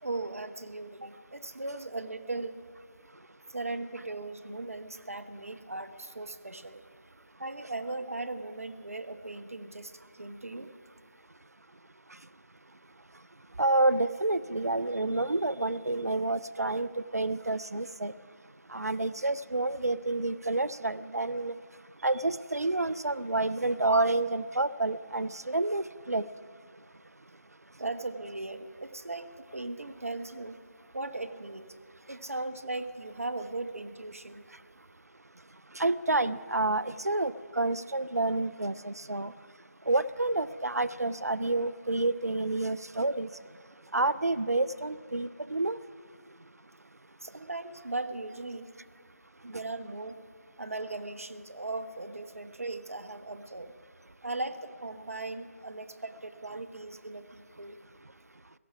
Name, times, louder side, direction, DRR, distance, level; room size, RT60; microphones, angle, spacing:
voice 1, 0.0-2.6 3.5-6.8 7.4-10.7 27.8-30.5 30.9-31.6 32.1-34.5 47.2-48.7 49.4-50.2 50.6-53.7 54.2-57.8, right 2 dB, 65° right, 10 dB, 1.1 m, -38 dB
voice 2, 13.6-18.1 18.7-21.5 22.0-26.3 35.7-39.3 39.9-43.3 43.9-45.8, right 2 dB, 85° right, 16 dB, 0.5 m, -29 dB
17.5 x 14.0 x 5.9 m, 2.2 s
figure-of-eight pair, 160°, 8 cm